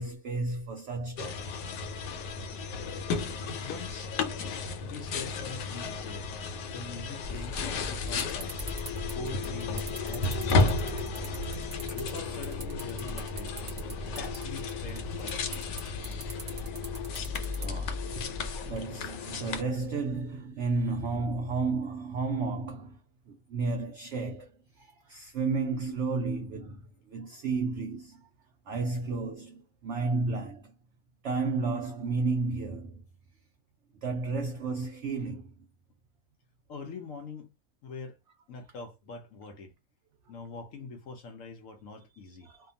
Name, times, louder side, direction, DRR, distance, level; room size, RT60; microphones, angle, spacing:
voice 1, 0.0-1.6 6.4-6.7 9.0-9.1 17.6-18.0 18.7-23.0 23.3-28.3 28.7-30.7 31.2-33.0 34.0-35.5 42.4-42.7, right 3 dB, 75° right, 0.6 m, -32 dB
sound 1, 1.2-19.6, left 4 dB, 85° left, 1.2 m, -33 dB
voice 2, 3.6-4.1 4.8-6.3 6.7-8.7 9.1-11.4 11.9-13.6 14.2-15.7 36.7-37.5 37.8-38.2 38.5-39.7 40.3-42.5, left 3 dB, 70° left, 0.8 m, -43 dB
sound 2, 7.2-18.8, equal, 35° right, 0.8 m, -39 dB
2.8 x 2.2 x 2.6 m
omnidirectional pair, 1.8 m